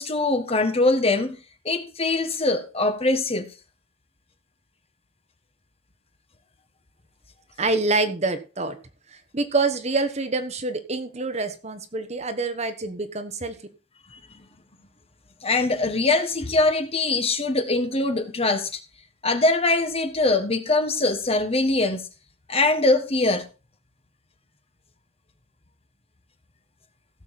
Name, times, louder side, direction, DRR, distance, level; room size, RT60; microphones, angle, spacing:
voice 1, 0.0-1.4 1.6-3.5 15.4-18.8 19.2-22.0 22.5-23.4, left 2 dB, 30° left, 1.4 m, -22 dB
voice 2, 7.6-8.8 9.3-13.5, right 3 dB, 35° right, 1.3 m, -26 dB
16.0 x 7.1 x 4.3 m
head